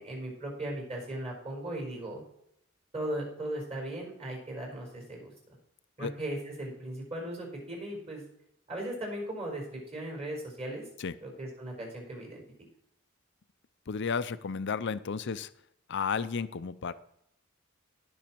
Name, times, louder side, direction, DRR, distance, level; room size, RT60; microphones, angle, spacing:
voice 1, 0.0-2.2 2.9-5.3 6.0-8.2 8.7-10.8 11.2-12.4, right 1 dB, 30° right, 0 dB, 5.0 m, -37 dB
voice 2, 13.9-15.5 15.9-16.9, left 5 dB, 55° left, 14 dB, 0.5 m, -32 dB
17.5 x 6.2 x 4.6 m, 0.74 s
head